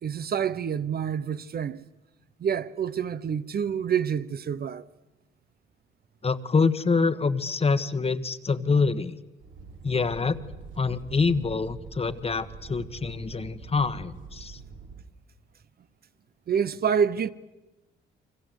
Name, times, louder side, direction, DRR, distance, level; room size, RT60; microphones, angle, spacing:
voice 1, 0.0-1.8 2.4-4.9 16.5-17.3, right 7 dB, 50° right, 1.0 m, -27 dB
voice 2, 6.2-9.2 9.8-10.4 10.8-14.6, left 4 dB, 30° left, 1.5 m, -26 dB
sound 1, 9.4-15.0, right 5 dB, 75° right, 3.7 m, -44 dB
30.0 x 25.0 x 8.1 m
cardioid pair, 90°, 20 cm